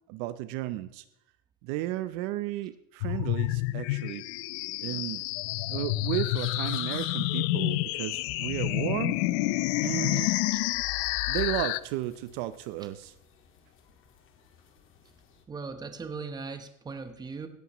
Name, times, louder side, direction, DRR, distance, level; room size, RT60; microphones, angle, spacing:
voice 1, 0.1-1.0 1.6-4.2 4.8-5.2 5.7-9.2 9.8-10.4 11.3-13.1, right 15 dB, 50° right, 13 dB, 0.7 m, -33 dB
sound 1, 3.0-11.8, left 19 dB, 55° left, 0.5 m, -29 dB
sound 2, 6.3-15.5, left 6 dB, 30° left, 1.8 m, -53 dB
voice 2, 15.5-17.5, right 4 dB, 10° right, 8 dB, 0.9 m, -39 dB
17.5 x 14.0 x 3.0 m, 0.80 s
supercardioid pair, 160°, 39 cm